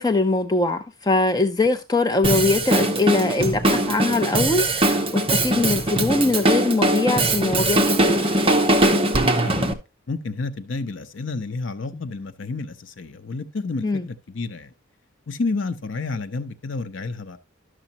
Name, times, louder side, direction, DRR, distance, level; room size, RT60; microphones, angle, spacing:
voice 1, 0.0-8.3 11.9-12.0 13.8-14.1, left 3 dB, 20° left, 0.5 m, -22 dB
Drum kit, 2.2-9.7, right 1 dB, 25° right, 0.9 m, -21 dB
voice 2, 9.4-9.8 10.1-14.7 15.3-17.4, left 3 dB, 60° left, 0.7 m, -30 dB
12.0 x 6.3 x 2.9 m
head